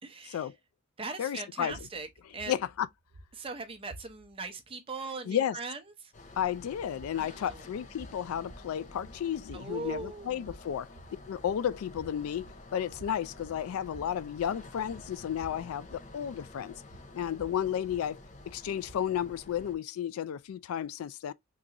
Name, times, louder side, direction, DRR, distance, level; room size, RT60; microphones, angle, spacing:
voice 1, 0.0-0.5 1.0-2.1 2.3-2.6 3.3-6.1 7.1-7.7 9.5-10.6, right 3 dB, 25° right, 0.7 m, -40 dB
voice 2, 1.2-1.7 2.5-2.9 5.3-5.6 6.4-10.9 11.3-16.7 17.1-18.2 18.5-21.3, left 9 dB, 85° left, 0.3 m, -33 dB
sound 1, 1.7-4.5 6.9-19.3, right 1 dB, 85° right, 0.9 m, -54 dB
sound 2, 6.1-19.8, left 2 dB, 35° left, 0.5 m, -50 dB
3.8 x 2.5 x 2.8 m
head